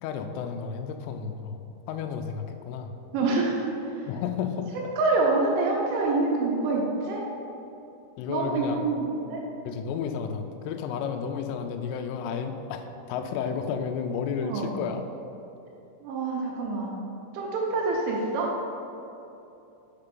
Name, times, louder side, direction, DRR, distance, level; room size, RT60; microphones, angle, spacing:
voice 1, 0.0-2.9 4.1-4.7 8.2-8.9 9.7-15.0, left 6 dB, 85° left, 5 dB, 3.1 m, -32 dB
voice 2, 3.1-3.8 5.0-7.2 8.3-9.4 14.4-14.7 16.0-16.9 17.3-18.5, right 3 dB, 80° right, -2 dB, 3.1 m, -26 dB
6.8 x 5.2 x 5.2 m, 2.8 s
omnidirectional pair, 6.0 m